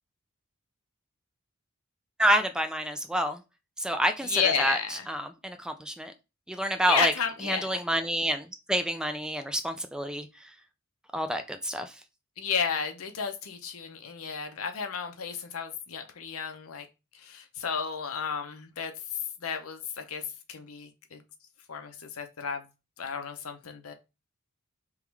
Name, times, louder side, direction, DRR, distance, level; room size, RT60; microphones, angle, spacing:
voice 1, 2.2-3.4 3.8-6.1 6.5-7.1 7.4-10.5 11.1-12.0, right 1 dB, 5° right, 0.3 m, -28 dB
voice 2, 4.2-5.0 6.9-7.8 12.4-16.9 17.2-18.9 19.4-20.2 20.5-21.2 21.7-22.6 23.0-23.9, left 6 dB, 70° left, 0.7 m, -32 dB
3.7 x 3.0 x 4.6 m
head